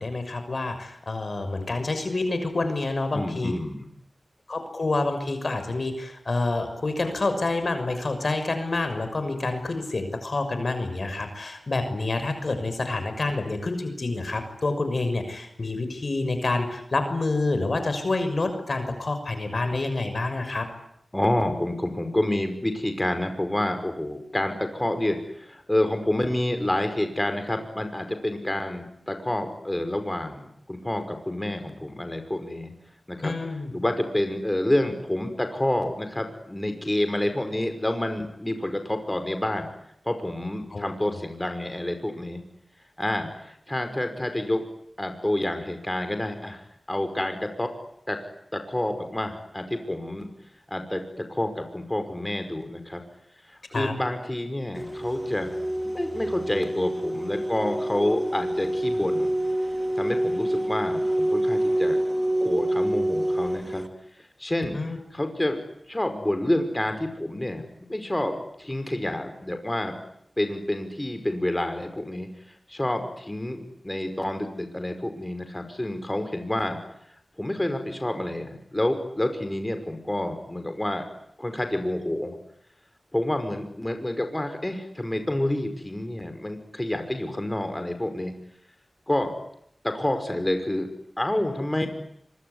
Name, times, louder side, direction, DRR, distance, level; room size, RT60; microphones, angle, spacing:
voice 1, 0.0-3.5 4.5-20.7 33.2-33.7 40.7-40.9 53.7-53.9 64.7-65.0, left 2 dB, 65° left, 8 dB, 6.2 m, -28 dB
voice 2, 3.1-3.9 21.1-32.7 33.1-33.3 33.7-39.7 40.1-42.4 43.0-44.6 45.0-46.6 46.9-47.7 48.1-48.2 48.5-50.3 50.7-53.0 53.5-55.5 55.9-59.3 59.9-62.0 62.4-63.8 64.4-64.8 65.1-65.6 65.9-67.6 67.9-69.9 70.4-72.3 72.7-76.8 77.4-81.0 81.4-82.4 83.1-88.3 89.1-89.3 89.8-90.9 91.2-91.9, left 1 dB, 20° left, 7 dB, 5.5 m, -28 dB
sound 1, 54.8-63.8, right 1 dB, ahead, 3.1 m, -27 dB
25.5 x 24.0 x 9.8 m, 0.73 s
cardioid pair, 40°, 0 cm